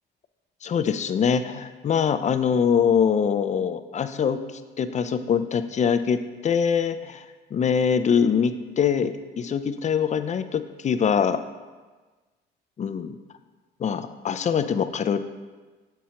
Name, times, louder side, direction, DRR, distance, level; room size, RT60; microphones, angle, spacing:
voice 1, 0.6-4.4 4.8-7.2 7.5-11.4 12.8-13.1 13.8-15.2, left 7 dB, 35° left, 10 dB, 0.4 m, -23 dB
6.1 x 5.6 x 2.9 m, 1.3 s
cardioid pair, 90°, 20 cm